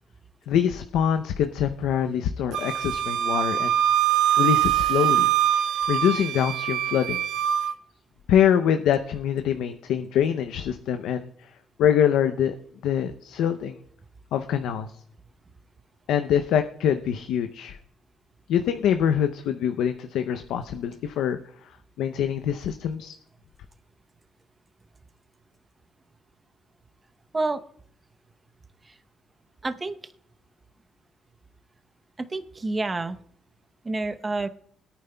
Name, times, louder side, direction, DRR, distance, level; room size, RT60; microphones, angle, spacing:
voice 1, 0.5-3.7 4.4-5.3 5.9-7.2 8.3-11.3 11.8-12.6 12.8-13.8 14.3-14.9 16.1-17.8 18.5-21.4 22.0-23.1, left 9 dB, 85° left, 8 dB, 0.6 m, -24 dB
Wind instrument woodwind instrument, 2.5-7.7, right 11 dB, 80° right, 0.5 m, -23 dB
voice 2, 29.6-30.0 32.2-33.2 33.8-34.5, right 2 dB, 25° right, 9 dB, 0.8 m, -28 dB
21.5 x 9.1 x 2.2 m, 0.65 s
cardioid pair, 90°, 0 cm